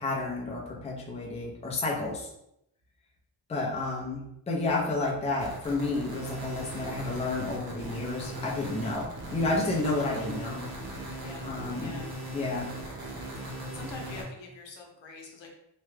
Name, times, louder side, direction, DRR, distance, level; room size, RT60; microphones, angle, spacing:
voice 1, 0.0-2.3 3.5-10.6 11.4-12.0 12.3-12.7, left 2 dB, 15° left, -3 dB, 0.5 m, -31 dB
sound 1, 5.4-14.2, right 1 dB, 50° right, 0.8 m, -39 dB
voice 2, 11.2-12.1 13.4-15.6, left 3 dB, 75° left, 1 dB, 0.9 m, -45 dB
3.0 x 2.2 x 3.3 m, 0.78 s
wide cardioid pair, 155°, 46 cm